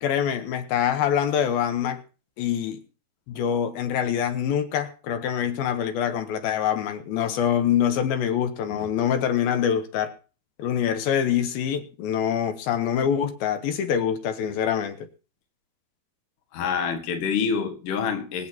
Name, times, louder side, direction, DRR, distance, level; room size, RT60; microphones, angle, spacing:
voice 1, 0.0-2.0 2.4-2.8 3.3-10.1 10.6-15.1, left 9 dB, 80° left, 2.8 m, -25 dB
voice 2, 16.5-18.5, left 6 dB, 45° left, 2.1 m, -27 dB
24.0 x 8.5 x 2.9 m
omnidirectional pair, 4.4 m